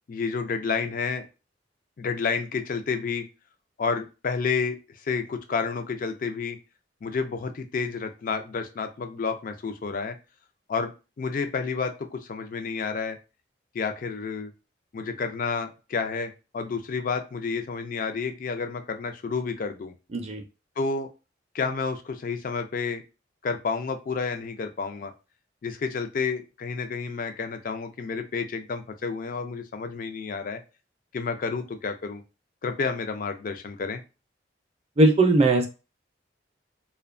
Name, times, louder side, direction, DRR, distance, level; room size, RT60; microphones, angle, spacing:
voice 1, 0.1-1.3 2.0-3.3 3.8-6.6 7.0-10.2 10.7-10.9 11.2-13.2 13.7-14.5 14.9-19.9 20.8-21.1 21.5-23.0 23.4-25.1 25.6-30.6 31.1-32.2 32.6-34.0, left 5 dB, 45° left, 7 dB, 0.4 m, -30 dB
voice 2, 35.0-35.7, right 2 dB, 35° right, 4 dB, 0.5 m, -19 dB
2.6 x 2.2 x 2.5 m, 0.30 s
head